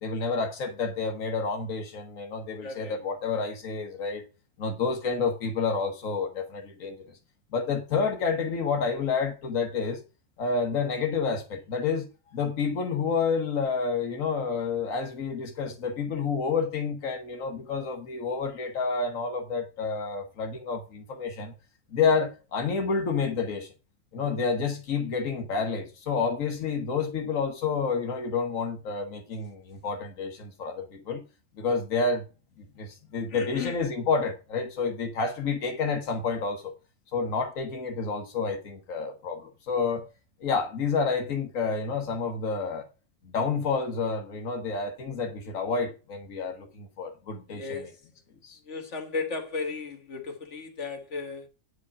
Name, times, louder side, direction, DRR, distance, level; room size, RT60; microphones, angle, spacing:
voice 1, 0.0-4.2 4.6-7.0 7.5-10.0 10.4-21.5 21.9-23.7 24.1-31.2 31.6-32.2 32.6-36.7 37.1-40.1 40.4-42.9 43.2-47.9 48.4-48.6, left 5 dB, 90° left, 1.6 m, -29 dB
voice 2, 2.6-3.0 3.3-3.5 33.3-33.8 47.5-48.0 48.7-51.5, left 4 dB, 65° left, 2.0 m, -35 dB
9.4 x 5.0 x 6.1 m
omnidirectional pair, 1.3 m